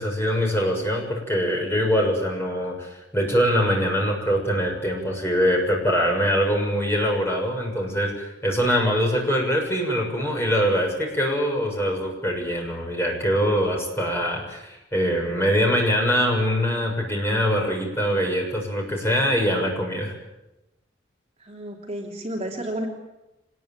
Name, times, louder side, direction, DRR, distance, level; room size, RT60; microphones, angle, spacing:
voice 1, 0.0-20.1, equal, 15° left, 0 dB, 6.9 m, -23 dB
voice 2, 21.4-22.9, right 1 dB, 30° right, 0 dB, 3.3 m, -31 dB
25.5 x 20.5 x 9.1 m, 0.97 s
head